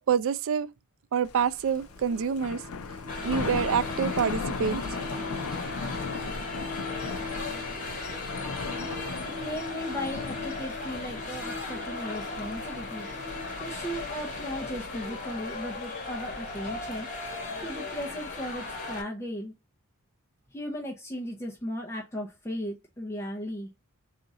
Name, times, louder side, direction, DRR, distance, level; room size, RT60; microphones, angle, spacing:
voice 1, 0.1-0.7 1.1-2.6 3.2-4.8, right 7 dB, 60° right, 0.3 m, -26 dB
Thunder, 1.3-19.0, left 4 dB, 75° left, 0.5 m, -39 dB
sound 1, 1.8-13.6, left 3 dB, 25° right, 2.0 m, -43 dB
sound 2, 3.1-19.0, left 3 dB, 35° left, 1.3 m, -37 dB
voice 2, 9.2-13.1 13.6-17.1 17.6-19.5 20.5-23.7, equal, 10° left, 0.7 m, -36 dB
3.7 x 2.5 x 3.9 m
head